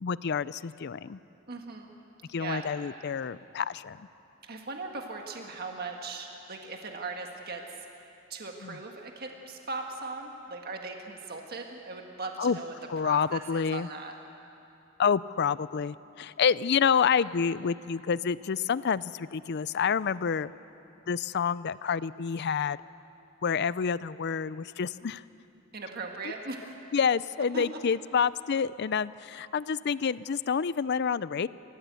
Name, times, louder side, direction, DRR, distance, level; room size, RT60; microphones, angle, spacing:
voice 1, 0.0-1.2 2.3-4.0 8.6-8.8 12.4-12.6 12.9-13.9 15.0-20.5 21.1-22.8 23.4-25.2 26.2-26.3 26.9-31.5, left 6 dB, 55° left, 18 dB, 0.4 m, -28 dB
voice 2, 1.5-1.9 2.4-2.7 4.4-7.6 8.3-12.7 13.0-14.1 25.7-26.7 27.5-27.6, right 3 dB, 50° right, 2 dB, 1.6 m, -39 dB
28.5 x 14.5 x 8.3 m, 2.9 s
head